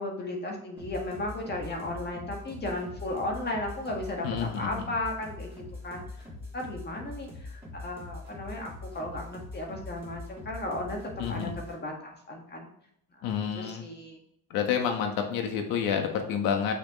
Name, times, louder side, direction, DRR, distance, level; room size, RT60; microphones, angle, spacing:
voice 1, 0.0-6.0 6.5-11.0 11.3-12.7 13.5-14.2, left 1 dB, 30° left, 1 dB, 1.8 m, -35 dB
sound 1, 0.8-11.8, left 2 dB, 5° right, 2.9 m, -43 dB
voice 2, 4.2-4.9 11.2-11.5 13.2-13.8 14.5-16.7, left 7 dB, 90° left, 4 dB, 1.4 m, -29 dB
6.4 x 6.1 x 3.1 m, 0.72 s
cardioid pair, 125°, 34 cm